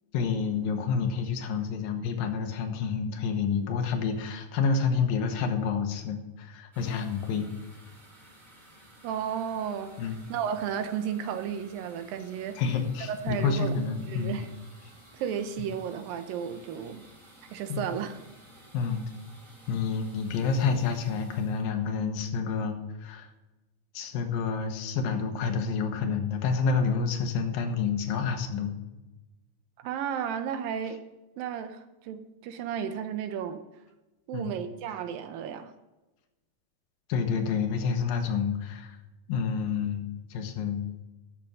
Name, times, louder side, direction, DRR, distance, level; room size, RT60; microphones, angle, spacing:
voice 1, 0.1-7.5 10.0-10.3 12.6-14.4 17.7-17.8 18.7-19.0 19.7-23.3 23.9-28.7 34.3-34.6 37.1-39.0 39.3-40.9, left 5 dB, 75° left, 6 dB, 2.8 m, -29 dB
sound 1, 6.7-22.4, right 1 dB, 15° right, 1.9 m, -54 dB
voice 2, 9.0-12.6 13.1-13.7 14.1-14.5 15.1-17.0 17.5-18.2 29.8-31.0 31.4-33.6 34.3-35.7, right 8 dB, 75° right, 9 dB, 2.4 m, -33 dB
13.0 x 6.7 x 6.3 m, 1.1 s
omnidirectional pair, 4.4 m